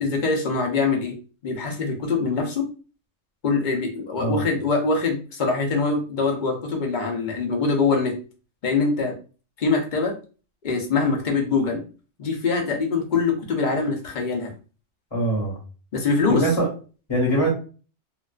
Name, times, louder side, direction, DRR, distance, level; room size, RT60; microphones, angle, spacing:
voice 1, 0.0-1.2 1.4-2.7 3.4-8.2 8.6-9.2 9.6-10.1 10.6-11.8 12.2-14.5 15.9-16.4, left 4 dB, 55° left, 1 dB, 0.5 m, -23 dB
voice 2, 15.1-15.6 16.3-16.7 17.1-17.6, right 1 dB, 25° left, -5 dB, 0.8 m, -22 dB
2.4 x 2.2 x 2.3 m, 0.36 s
omnidirectional pair, 1.3 m